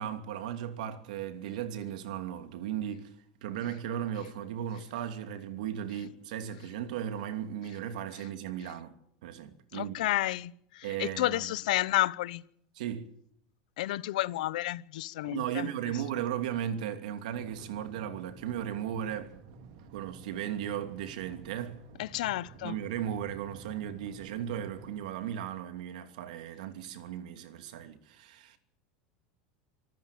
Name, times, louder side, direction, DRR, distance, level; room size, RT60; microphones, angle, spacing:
voice 1, 0.0-3.1 3.4-8.9 9.2-10.0 10.8-11.5 12.7-13.0 15.2-19.3 19.9-21.8 22.6-28.6, right 10 dB, 80° right, 2.7 m, -36 dB
voice 2, 9.7-12.4 13.8-15.7 22.0-22.8, left 16 dB, 85° left, 0.9 m, -31 dB
sound 1, 17.3-25.0, right 5 dB, 60° right, 2.7 m, -51 dB
26.0 x 13.5 x 9.1 m
supercardioid pair, 175°, 4 cm